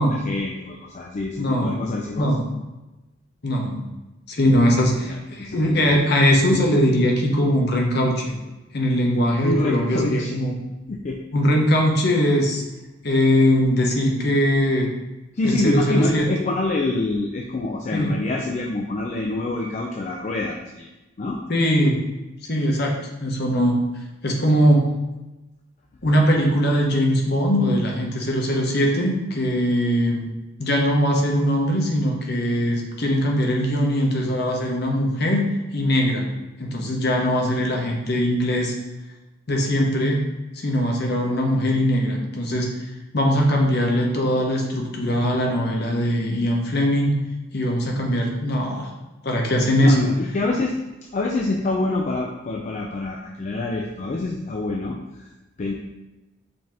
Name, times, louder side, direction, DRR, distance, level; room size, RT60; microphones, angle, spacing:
voice 1, 0.0-2.3 5.1-6.0 9.4-10.3 10.9-11.2 15.3-20.9 21.2-21.4 49.8-50.8 51.1-55.3 55.6-55.7, left 2 dB, 35° left, 0 dB, 0.3 m, -26 dB
voice 2, 1.4-1.8 2.2-2.5 3.4-3.9 4.3-8.2 8.7-10.6 11.3-12.6 13.0-14.9 15.4-16.3 17.9-18.1 21.5-22.0 22.5-23.7 24.2-24.9 26.0-30.3 30.6-35.5 35.7-36.3 36.6-38.7 39.5-40.2 40.5-42.7 43.1-47.2 47.5-48.9 49.2-50.1, equal, 55° left, 0 dB, 0.8 m, -21 dB
5.2 x 2.8 x 3.5 m, 1.0 s
head